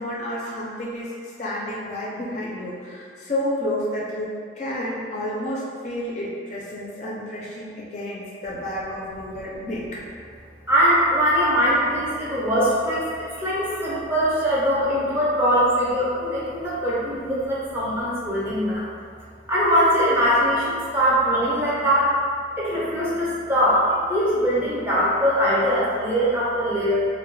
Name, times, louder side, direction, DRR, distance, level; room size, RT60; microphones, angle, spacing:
voice 1, 0.0-4.3 4.6-9.8, left 1 dB, 40° left, -5 dB, 0.3 m, -30 dB
voice 2, 10.7-18.9 19.5-22.1 22.6-27.1, equal, 10° right, -9 dB, 0.5 m, -21 dB
2.2 x 2.1 x 3.1 m, 2.2 s
head